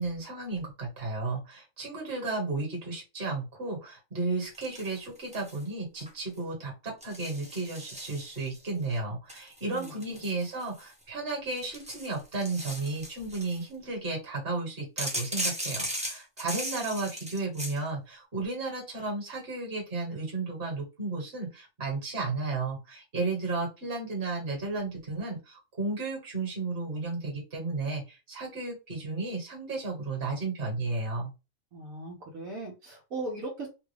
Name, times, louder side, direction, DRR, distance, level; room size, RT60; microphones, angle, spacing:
voice 1, 0.0-31.3, right 3 dB, 45° right, -1 dB, 1.8 m, -33 dB
sound 1, 4.5-5.6 6.0-6.4 7.0-8.7 9.3-11.0 11.5-13.6 15.0-17.8, right 1 dB, 5° right, 0.7 m, -37 dB
voice 2, 31.7-33.7, right 2 dB, 75° right, -2 dB, 1.5 m, -38 dB
3.5 x 2.4 x 3.4 m, 0.27 s
omnidirectional pair, 1.4 m